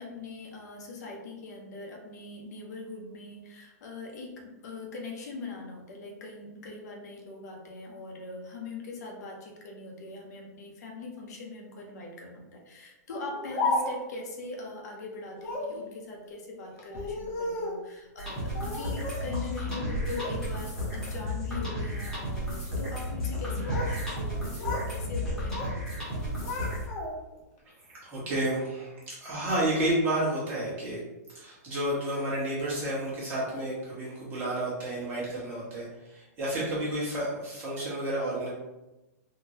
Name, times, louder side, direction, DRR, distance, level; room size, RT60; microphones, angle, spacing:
voice 1, 0.0-26.2, left 3 dB, 65° left, 0 dB, 0.8 m, -41 dB
Speech, 13.1-14.2 15.4-15.8 16.8-17.8 18.5-19.3 19.6-20.4 20.8-21.2 21.8-22.1 23.3-24.0 24.3-24.9 25.2-25.8 26.1-27.3, left 2 dB, 30° left, 0.6 m, -34 dB
sound 1, 18.2-26.8, left 1 dB, 5° left, 1.0 m, -33 dB
voice 2, 27.8-31.0 31.3-38.5, right 1 dB, 20° right, -7 dB, 1.1 m, -31 dB
3.7 x 2.2 x 2.8 m, 1.0 s
hypercardioid pair, 160°, 9 cm